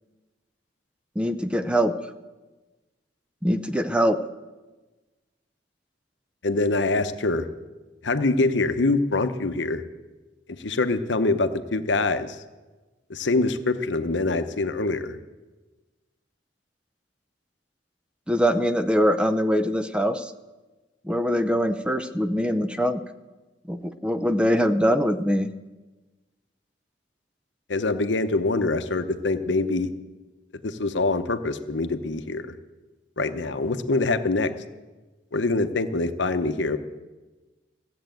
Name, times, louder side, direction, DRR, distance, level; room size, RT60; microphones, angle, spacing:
voice 1, 1.2-1.9 3.4-4.2 18.3-20.3 21.0-23.0 23.7-25.5, equal, 5° right, 10 dB, 0.5 m, -23 dB
voice 2, 6.4-7.5 8.0-9.8 10.5-12.4 13.1-15.2 27.7-29.9 30.6-32.5 33.2-34.5 35.3-36.8, left 3 dB, 70° left, 10 dB, 0.9 m, -24 dB
15.0 x 7.8 x 9.1 m, 1.2 s
head